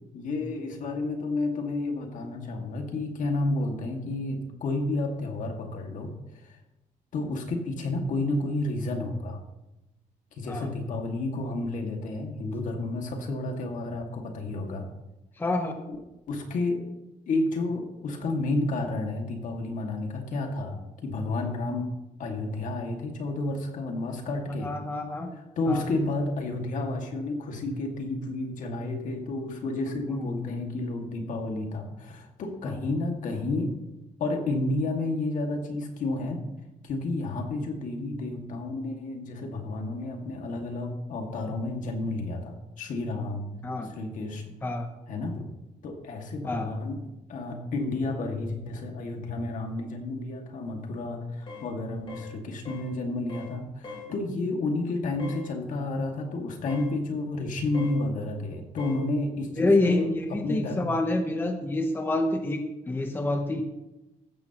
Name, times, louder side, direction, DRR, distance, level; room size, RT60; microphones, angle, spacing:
voice 1, 0.1-6.1 6.4-6.6 7.1-9.4 10.4-14.8 16.3-16.8 17.3-21.9 22.2-24.7 25.6-33.7 34.2-36.4 36.8-43.5 43.9-44.5 45.1-45.5 45.8-47.0 47.3-60.8, left 2 dB, 65° left, 3 dB, 2.1 m, -31 dB
voice 2, 15.4-15.7 24.6-25.3 25.7-25.8 30.1-30.5 32.7-32.8 43.6-43.9 44.6-44.9 46.4-46.7 59.5-63.6, left 2 dB, 15° left, 5 dB, 0.9 m, -27 dB
sound 1, 51.5-51.7 52.1-52.3 52.7-52.9 53.3-53.5 53.8-54.1 55.2-55.4 56.7-56.9 57.7-58.0 58.8-59.0, left 5 dB, 40° left, 4.1 m, -41 dB
14.5 x 12.5 x 3.0 m, 0.97 s
cardioid pair, 155°, 14 cm